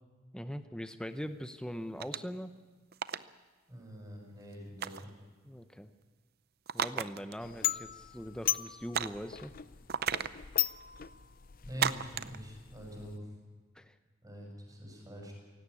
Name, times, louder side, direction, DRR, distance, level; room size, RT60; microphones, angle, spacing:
voice 1, 0.3-2.6 5.4-5.9 6.7-9.5 13.7-14.0, equal, 5° left, 9 dB, 0.7 m, -41 dB
sound 1, 2.0-2.4 2.9-3.2 4.8-5.1 6.7-7.3 7.6-7.7 8.9-9.3 9.9-10.4 11.8-12.4, right 8 dB, 50° right, 0.6 m, -33 dB
voice 2, 3.7-5.1 11.6-13.3 14.2-15.3, equal, 20° right, 0 dB, 7.1 m, -44 dB
sound 2, 7.4-13.2, left 13 dB, 45° left, 0.6 m, -37 dB
17.5 x 17.0 x 9.8 m, 1.4 s
head